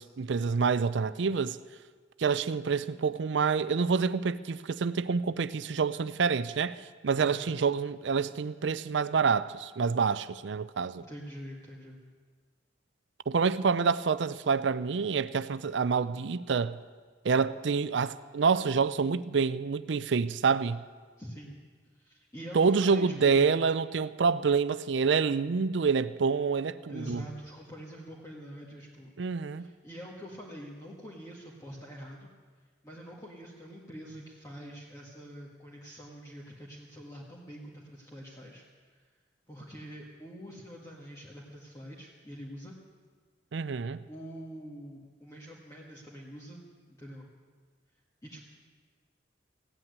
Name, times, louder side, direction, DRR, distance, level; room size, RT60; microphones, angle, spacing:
voice 1, 0.0-1.6 2.2-6.8 7.0-11.0 13.3-16.8 17.2-20.8 22.5-27.2 29.2-29.6 43.5-44.0, right 5 dB, 70° right, 0.5 m, -27 dB
voice 2, 7.2-7.5 10.9-12.0 21.2-21.6 21.9-23.6 26.9-32.3 32.8-39.0 39.5-42.8 44.1-47.3 48.2-48.4, equal, 15° left, 1.7 m, -45 dB
16.0 x 8.8 x 9.4 m
head